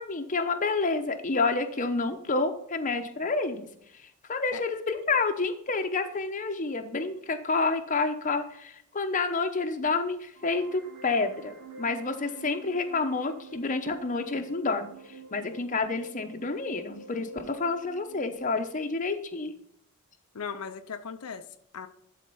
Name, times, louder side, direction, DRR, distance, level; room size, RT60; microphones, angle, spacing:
voice 1, 0.0-3.7 3.9-19.5, left 3 dB, 35° left, 7 dB, 0.8 m, -29 dB
sound 1, 10.3-18.3, right 4 dB, 85° right, 1.7 m, -47 dB
voice 2, 20.3-21.9, left 6 dB, 80° left, 8 dB, 0.6 m, -38 dB
12.0 x 4.2 x 5.5 m, 0.73 s
head